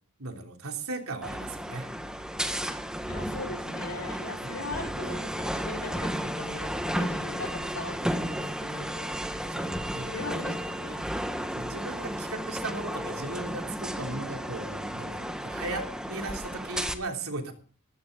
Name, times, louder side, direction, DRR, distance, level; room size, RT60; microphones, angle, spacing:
voice 1, 0.2-1.9 4.4-4.5 9.5-10.3 11.5-17.5, right 2 dB, 75° right, 3 dB, 3.3 m, -37 dB
sound 1, 1.2-16.9, equal, 5° right, 1.3 m, -33 dB
voice 2, 3.0-9.1 9.9-11.1, left 3 dB, 65° left, 1 dB, 4.9 m, -40 dB
18.0 x 15.5 x 3.9 m, 0.43 s
head